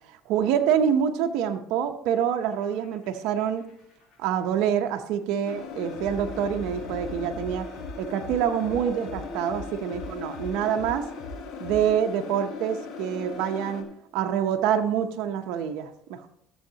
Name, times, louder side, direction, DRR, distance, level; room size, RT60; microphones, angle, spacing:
voice 1, 0.3-3.6 4.2-7.7 8.0-11.1 11.6-13.9 14.1-16.3, right 8 dB, 75° right, 5 dB, 0.7 m, -26 dB
sound 1, 2.5-12.3, left 2 dB, 50° left, 3.7 m, -43 dB
sound 2, 5.4-13.8, left 5 dB, 65° left, 1.6 m, -38 dB
14.0 x 7.1 x 2.8 m, 0.73 s
cardioid pair, 110°, 0 cm